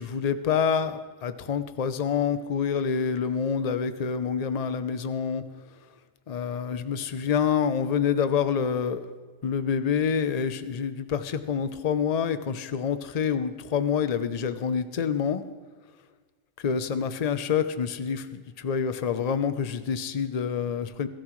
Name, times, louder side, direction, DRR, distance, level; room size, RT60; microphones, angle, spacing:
voice 1, 0.0-5.4 6.3-9.1 9.4-15.4 16.6-21.1, left 7 dB, 40° left, 11 dB, 0.6 m, -27 dB
21.5 x 13.0 x 3.2 m, 1.5 s
omnidirectional pair, 1.3 m